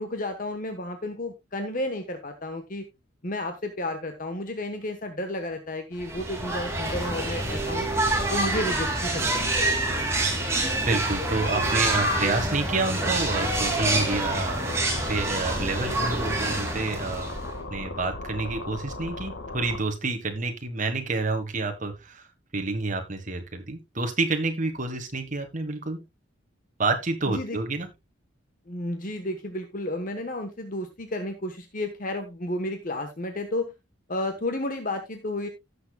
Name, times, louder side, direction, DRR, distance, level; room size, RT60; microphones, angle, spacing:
voice 1, 0.0-2.9 3.2-7.9 8.3-9.6 27.3-27.6 28.7-33.7 34.1-35.5, left 1 dB, 45° left, 6 dB, 1.2 m, -32 dB
sound 1, 6.0-17.6, right 2 dB, 15° right, 2.6 m, -27 dB
voice 2, 10.9-14.8 15.1-17.3 17.7-22.3 22.5-26.0 26.8-27.9, right 3 dB, 40° right, 6 dB, 1.5 m, -29 dB
sound 2, 13.4-19.8, left 2 dB, 75° left, 1.8 m, -37 dB
16.5 x 6.8 x 2.3 m, 0.21 s
head